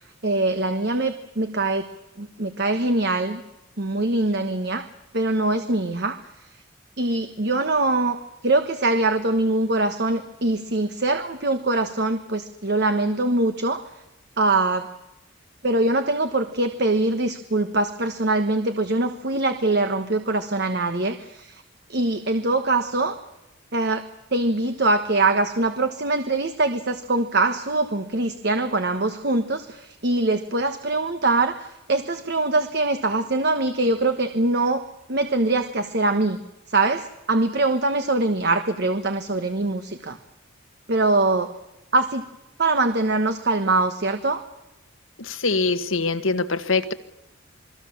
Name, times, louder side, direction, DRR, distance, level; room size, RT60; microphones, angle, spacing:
voice 1, 0.2-1.9 2.2-3.4 3.8-4.9 5.1-6.2 7.0-8.2 8.4-13.9 14.4-14.9 15.6-21.6 21.9-23.2 23.7-24.0 24.3-34.8 35.1-36.4 36.7-40.2 40.9-41.5 41.9-42.2 42.6-44.4, right 2 dB, 55° right, 1.3 m, -23 dB
voice 2, 45.2-46.9, left 3 dB, 75° left, 1.6 m, -23 dB
28.0 x 21.0 x 7.3 m
head